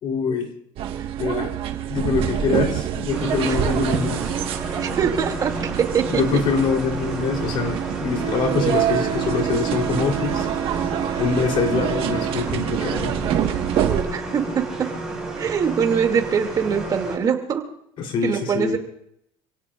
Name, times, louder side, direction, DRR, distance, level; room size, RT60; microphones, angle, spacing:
voice 1, 0.0-0.5 1.2-1.5 1.9-4.3 6.0-10.5 11.2-13.3 18.0-18.8, left 5 dB, 50° left, 3 dB, 3.7 m, -24 dB
sound 1, 0.8-14.0, right 10 dB, 55° right, 1.6 m, -26 dB
sound 2, 3.1-17.2, right 2 dB, 5° right, 6.7 m, -32 dB
voice 2, 4.7-6.2 8.9-9.0 9.3-9.4 13.9-14.6 15.4-17.6 18.2-18.8, right 7 dB, 35° right, 3 dB, 2.6 m, -23 dB
28.0 x 17.5 x 2.5 m, 0.73 s
cardioid pair, 135°, 11 cm